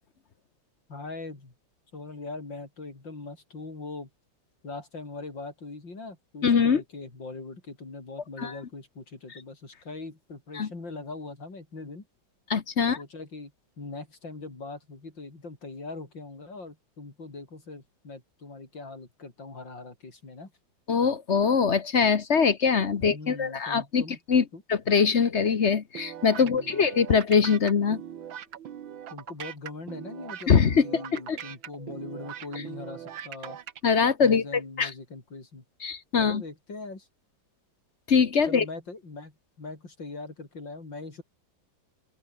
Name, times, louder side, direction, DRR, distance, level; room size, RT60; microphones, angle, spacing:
voice 1, 0.9-1.5 1.9-4.1 4.6-12.1 12.8-20.5 23.0-24.2 24.5-24.6 26.4-26.9 29.1-30.5 30.8-33.6 34.2-35.6 36.2-37.1 38.5-41.2, left 3 dB, 70° left, 6.1 m, -41 dB
voice 2, 6.4-6.8 8.4-8.5 10.5-10.7 12.5-13.0 20.9-24.0 24.3-24.4 24.7-28.0 30.5-30.8 31.1-31.4 33.8-34.4 34.8-34.9 35.8-36.4 38.1-38.6, left 6 dB, 40° left, 1.2 m, -22 dB
sound 1, 25.9-33.8, right 10 dB, 85° right, 2.1 m, -41 dB
open air
omnidirectional pair, 2.1 m